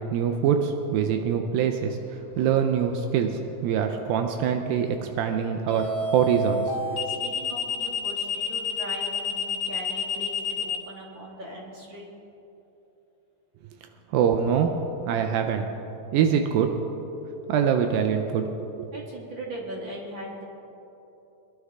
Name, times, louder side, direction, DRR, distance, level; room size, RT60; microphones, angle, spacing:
voice 1, 0.0-6.7 14.1-14.8 15.1-15.7 16.1-16.7 17.5-18.4 18.8-18.9, right 8 dB, 85° right, 5 dB, 2.4 m, -24 dB
sound 1, 2.4-2.7 5.7-10.8, left 4 dB, 40° left, 1.7 m, -29 dB
voice 2, 6.8-12.0 18.9-20.4, right 1 dB, 40° right, -3 dB, 2.2 m, -39 dB
23.0 x 11.5 x 3.6 m, 3.0 s
omnidirectional pair, 4.1 m